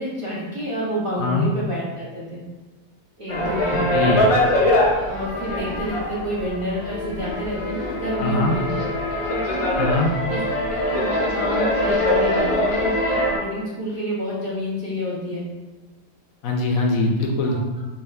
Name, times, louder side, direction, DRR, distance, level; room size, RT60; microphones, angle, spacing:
voice 1, 0.0-2.4 3.2-3.9 5.1-8.7 9.3-15.5 17.4-17.8, equal, 25° right, -9 dB, 1.0 m, -29 dB
voice 2, 1.2-1.5 3.9-4.2 8.2-8.5 9.7-10.1 16.4-17.6, left 2 dB, 75° left, 1 dB, 0.9 m, -22 dB
sound 1, 3.3-13.4, left 1 dB, 50° left, 0.4 m, -23 dB
3.5 x 2.8 x 4.2 m, 1.2 s
omnidirectional pair, 1.5 m